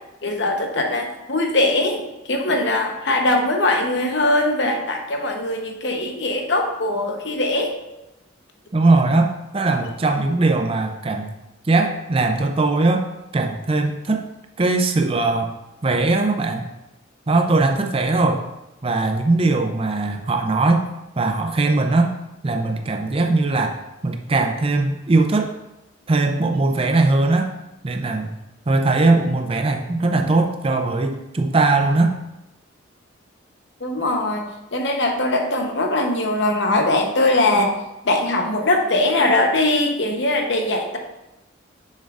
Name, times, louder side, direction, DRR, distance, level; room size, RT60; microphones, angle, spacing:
voice 1, 0.2-7.7 33.8-37.8 38.0-41.0, left 2 dB, 65° left, 3 dB, 0.9 m, -21 dB
voice 2, 8.7-11.3 11.6-13.1 13.3-14.2 14.6-15.5 15.8-16.7 17.3-18.4 18.8-20.9 21.2-22.1 22.4-25.5 26.1-27.5 27.8-28.3 28.7-32.2, right 3 dB, 30° right, 4 dB, 0.4 m, -20 dB
6.7 x 6.4 x 2.5 m, 0.94 s
head